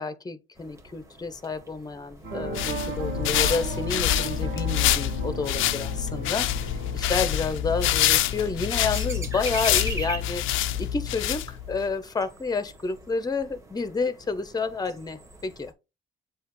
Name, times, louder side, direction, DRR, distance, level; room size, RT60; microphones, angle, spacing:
voice 1, 0.0-15.7, left 4 dB, 20° left, 0.7 m, -30 dB
sound 1, 0.6-15.7, right 2 dB, 15° right, 1.5 m, -44 dB
sound 2, 2.2-8.5, right 5 dB, 90° right, 0.9 m, -37 dB
sound 3, 2.3-11.8, left 11 dB, 85° left, 0.4 m, -26 dB
7.2 x 2.5 x 3.0 m
cardioid pair, 90°, 20 cm